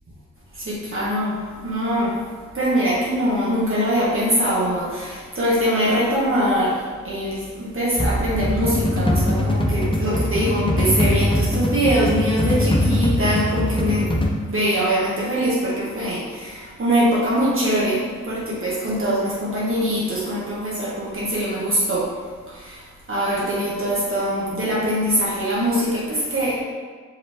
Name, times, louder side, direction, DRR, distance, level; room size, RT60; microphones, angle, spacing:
voice 1, 0.5-2.2 2.5-14.1 14.5-22.1 22.5-22.8 23.1-26.6, equal, 45° right, -7 dB, 1.3 m, -23 dB
sound 1, 8.0-14.3, left 1 dB, 15° left, 0.6 m, -21 dB
4.8 x 3.1 x 3.5 m, 1.5 s
cardioid pair, 50°, 30 cm